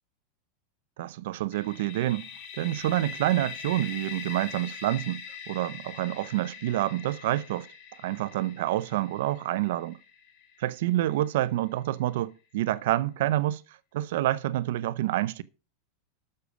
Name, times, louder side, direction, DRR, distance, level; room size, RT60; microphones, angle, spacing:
voice 1, 1.0-2.3 2.6-5.2 5.5-7.7 8.0-10.0 10.6-13.6 13.9-15.4, right 14 dB, 70° right, 0.7 m, -28 dB
sound 1, 1.5-11.2, left 7 dB, 55° left, 2.7 m, -43 dB
12.5 x 6.7 x 5.0 m
supercardioid pair, 135°, 0 cm